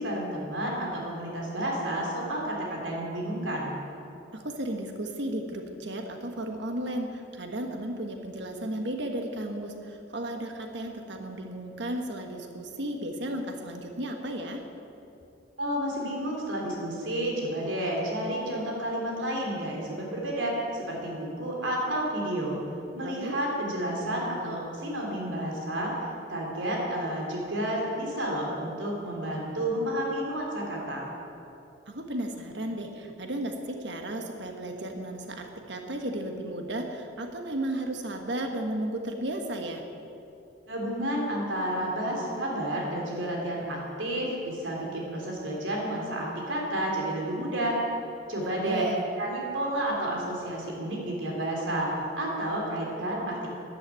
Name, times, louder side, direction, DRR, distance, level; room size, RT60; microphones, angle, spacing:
voice 1, 0.0-3.7 15.6-22.6 22.9-31.1 40.7-47.8 48.3-48.9 49.2-53.5, right 1 dB, 85° right, -2 dB, 3.5 m, -31 dB
voice 2, 4.3-14.6 23.0-23.4 31.9-39.8 48.3-49.0, right 1 dB, 65° right, 4 dB, 1.5 m, -34 dB
13.5 x 11.5 x 9.1 m, 2.8 s
head